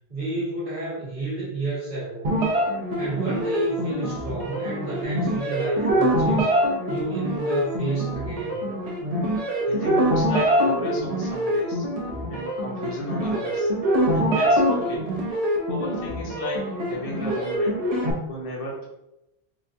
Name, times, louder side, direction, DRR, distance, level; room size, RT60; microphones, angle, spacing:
voice 1, 0.1-2.4 2.9-6.5 6.9-8.6, right 2 dB, 55° right, -8 dB, 1.3 m, -31 dB
sound 1, 2.2-18.1, equal, 40° right, 0.8 m, -24 dB
voice 2, 9.6-11.9 12.3-13.7 14.1-15.0 15.7-17.8 18.3-18.9, left 1 dB, 40° left, -4 dB, 0.7 m, -33 dB
4.2 x 2.3 x 2.6 m, 0.88 s
omnidirectional pair, 1.0 m